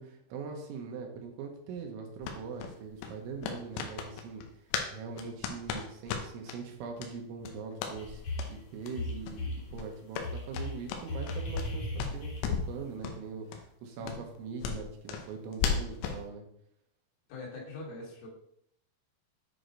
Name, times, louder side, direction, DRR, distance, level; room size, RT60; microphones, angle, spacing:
voice 1, 0.0-4.5 4.9-8.2 8.5-16.5, right 5 dB, 75° right, 2 dB, 3.4 m, -42 dB
sound 1, 2.2-4.9 5.2-6.6 7.0-7.1 7.4-8.0 8.3-8.5 8.8-8.9 9.2-9.4 9.7-11.7 12.0-12.7 13.0-13.2 13.5-13.6 14.0-16.2, left 6 dB, 90° left, 3.5 m, -35 dB
sound 2, 7.9-8.6 8.9-9.6 10.2-12.7, left 1 dB, 55° left, 2.2 m, -36 dB
voice 2, 17.3-18.3, left 3 dB, 70° left, -3 dB, 4.4 m, -43 dB
9.9 x 4.7 x 3.9 m, 0.71 s
omnidirectional pair, 5.7 m